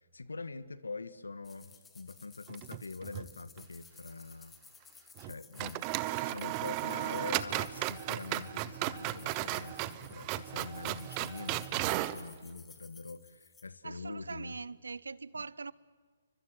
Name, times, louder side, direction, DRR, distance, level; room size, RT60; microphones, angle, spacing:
voice 1, 0.0-4.5 4.9-5.9 6.2-14.6 15.3-15.4, left 3 dB, 80° left, 1.5 m, -44 dB
sound 1, 1.4-13.7, left 5 dB, 10° left, 1.8 m, -57 dB
sound 2, 2.5-3.3 3.6-3.7 5.2-5.3 5.6-12.2, right 17 dB, 30° right, 0.9 m, -35 dB
voice 2, 13.8-15.7, right 4 dB, 80° right, 0.8 m, -42 dB
30.0 x 24.5 x 7.8 m
figure-of-eight pair, 130°, 0 cm